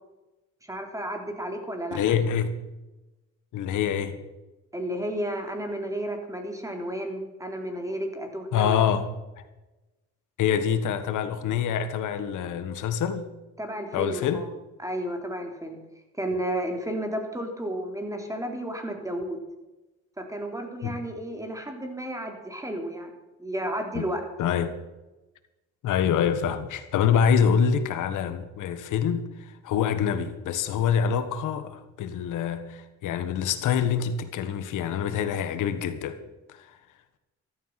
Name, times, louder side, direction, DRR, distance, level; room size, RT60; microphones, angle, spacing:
voice 1, 0.6-2.2 4.7-8.8 13.6-14.5 14.8-15.8 16.2-19.4 20.2-23.1 23.4-24.2, right 1 dB, 10° right, 3.6 m, -32 dB
voice 2, 1.9-2.5 3.5-4.2 8.5-9.1 10.4-13.3 13.9-14.4 20.8-21.0 23.9-24.0 24.4-24.8 25.8-36.2 36.5-36.7, left 8 dB, 85° left, 1.6 m, -26 dB
14.5 x 13.0 x 5.9 m
cardioid pair, 90°, 30 cm